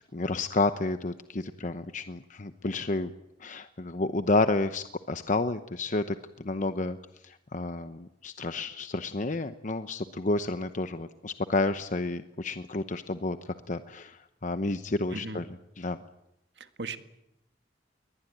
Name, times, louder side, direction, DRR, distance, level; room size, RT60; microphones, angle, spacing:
voice 1, 0.1-3.1 3.4-7.0 7.2-15.4 15.8-16.0, left 2 dB, 45° left, 10 dB, 0.9 m, -30 dB
voice 2, 15.1-15.4 16.6-17.0, right 3 dB, 80° right, 9 dB, 1.8 m, -37 dB
22.5 x 20.0 x 9.3 m, 0.84 s
head